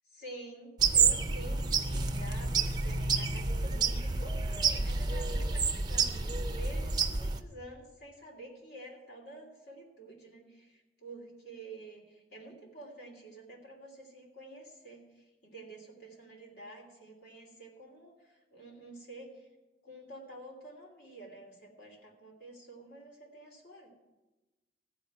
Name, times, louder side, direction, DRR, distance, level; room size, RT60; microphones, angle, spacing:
voice 1, 0.1-15.0 15.4-19.5 19.8-23.9, right 1 dB, 65° left, 0 dB, 3.1 m, -49 dB
sound 1, 0.8-7.4, right 5 dB, 25° right, 0.6 m, -29 dB
15.0 x 5.1 x 8.9 m, 1.1 s
head